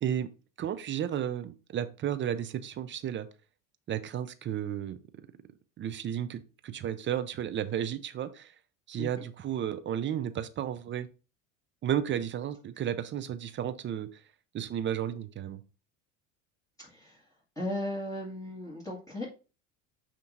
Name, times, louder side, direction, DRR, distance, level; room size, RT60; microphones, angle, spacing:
voice 1, 0.6-3.3 3.9-5.3 5.8-8.5 8.9-11.1 11.8-14.2 14.5-15.6, right 10 dB, 30° right, 13 dB, 0.6 m, -33 dB
voice 2, 16.8-17.2 17.6-19.3, left 1 dB, 10° left, -5 dB, 2.0 m, -36 dB
8.4 x 3.0 x 4.0 m, 0.32 s
supercardioid pair, 105°, 37 cm